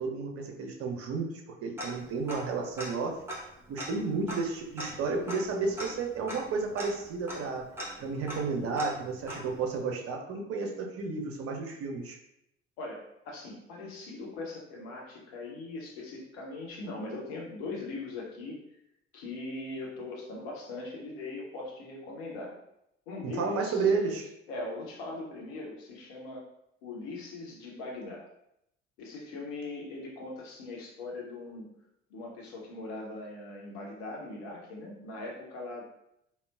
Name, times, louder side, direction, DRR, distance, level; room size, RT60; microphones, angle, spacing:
voice 1, 0.0-1.3 1.6-3.2 3.7-7.6 8.0-12.2 23.2-24.3, right 4 dB, 40° right, 2 dB, 0.6 m, -32 dB
Tick-tock, 1.8-2.5 2.8-2.9 3.2-9.8, equal, 5° right, 1.0 m, -41 dB
voice 2, 12.8-18.6 19.1-22.6 23.1-23.9 24.5-26.4 26.8-28.3 29.0-31.7 32.1-35.8, left 2 dB, 60° left, -2 dB, 0.9 m, -40 dB
3.6 x 2.1 x 2.4 m, 0.79 s
figure-of-eight pair, 50°, 34 cm